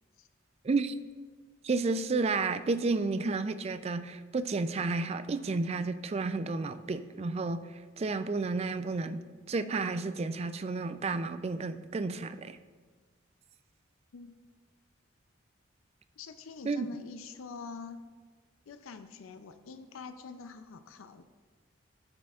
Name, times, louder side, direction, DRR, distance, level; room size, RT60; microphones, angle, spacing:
voice 1, 0.6-1.0 1.6-7.6 8.0-12.6 16.6-16.9, right 3 dB, 30° right, 12 dB, 0.3 m, -31 dB
voice 2, 16.2-18.0 18.7-21.2, left 4 dB, 85° left, 8 dB, 0.5 m, -45 dB
12.5 x 8.6 x 2.4 m, 1.4 s
head